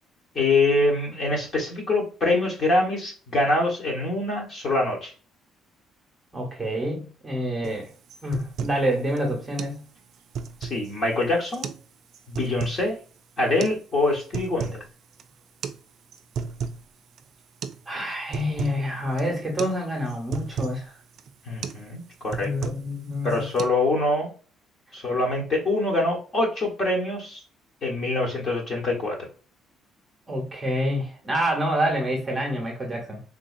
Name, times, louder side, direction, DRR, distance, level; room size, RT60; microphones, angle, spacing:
voice 1, 0.3-5.1 10.6-11.7 12.3-13.0 13.4-14.8 21.4-22.7 23.2-24.3 24.9-27.4 27.8-29.2, left 2 dB, 30° left, -2 dB, 1.2 m, -24 dB
voice 2, 6.3-7.9 8.2-9.8 17.9-21.0 22.4-23.5 30.3-33.2, equal, 15° right, -1 dB, 1.0 m, -27 dB
sound 1, 7.6-7.8 8.1-8.8 9.2-9.3 9.6-9.8 10.1-10.9 11.5-11.9 12.1-12.8 13.6-13.8 14.1-14.8 15.1-15.2 15.6-15.8 16.1-16.8 17.2-17.3 17.6-17.8 18.1-18.8 19.2-19.3 19.6-19.8 20.1-20.8 21.2-21.3 21.6-21.8 22.1-22.9 23.2-23.6, right 6 dB, 50° right, 0.3 m, -33 dB
3.8 x 2.7 x 2.6 m, 0.37 s
cardioid pair, 170°, 0 cm